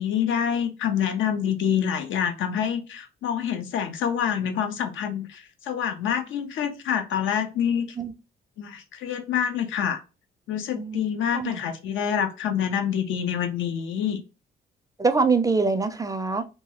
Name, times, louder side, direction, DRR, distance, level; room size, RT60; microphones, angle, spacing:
voice 1, 0.0-7.9 8.6-10.0 10.5-14.2, left 8 dB, 80° left, 0.7 m, -26 dB
voice 2, 10.7-11.1 11.3-11.6 15.0-16.5, right 4 dB, 15° right, 0.4 m, -24 dB
2.9 x 2.3 x 2.9 m
cardioid pair, 90°, 20 cm